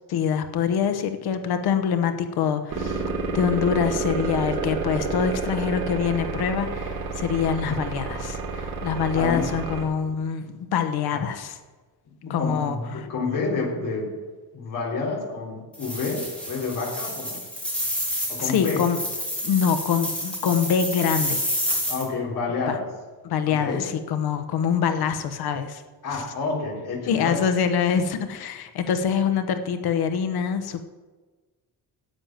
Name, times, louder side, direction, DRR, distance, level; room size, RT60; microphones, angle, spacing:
voice 1, 0.1-3.0 3.3-11.6 12.3-13.1 18.4-19.0 19.4-21.4 22.7-22.8 23.2-25.8 26.1-26.2 27.1-30.8, left 7 dB, 75° left, 8 dB, 1.1 m, -25 dB
sound 1, 2.7-9.8, right 4 dB, 65° right, 3.4 m, -29 dB
voice 2, 12.2-14.1 14.5-17.4 18.3-18.8 21.9-22.8 23.5-23.8 26.0-27.3, left 4 dB, 55° left, -3 dB, 3.6 m, -29 dB
sound 2, 15.7-22.0, equal, 5° left, 3.3 m, -29 dB
11.0 x 9.1 x 7.4 m, 1.3 s
cardioid pair, 175°, 38 cm